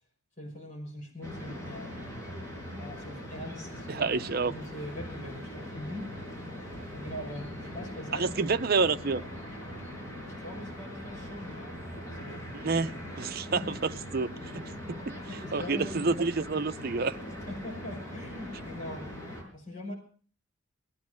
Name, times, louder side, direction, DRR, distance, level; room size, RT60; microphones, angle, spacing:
voice 1, 0.4-2.0 2.8-6.2 6.9-8.3 10.3-12.5 13.4-13.7 14.8-16.2 17.5-19.2 19.5-19.9, left 1 dB, 40° left, 5.6 m, -42 dB
sound 1, 1.2-19.4, equal, 15° left, 6.6 m, -41 dB
voice 2, 3.9-4.5 8.1-9.2 12.6-12.9 13.2-15.2 15.5-17.2, right 4 dB, 50° right, 0.7 m, -29 dB
19.5 x 11.0 x 6.3 m
head